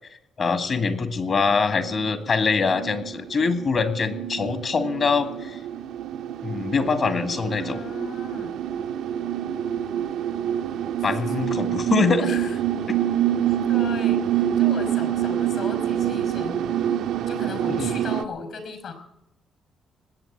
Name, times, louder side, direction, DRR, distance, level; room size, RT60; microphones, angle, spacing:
voice 1, 0.4-5.6 6.4-7.8 11.0-12.3 17.7-17.9, left 4 dB, 45° left, 9 dB, 2.1 m, -24 dB
sound 1, 1.6-18.2, right 10 dB, 80° right, 0.7 m, -26 dB
voice 2, 7.6-8.5 11.0-11.2 12.2-12.6 13.5-16.9 17.3-18.9, left 4 dB, 65° left, 8 dB, 4.9 m, -37 dB
20.0 x 8.4 x 8.7 m, 0.83 s
cardioid pair, 90°, 0 cm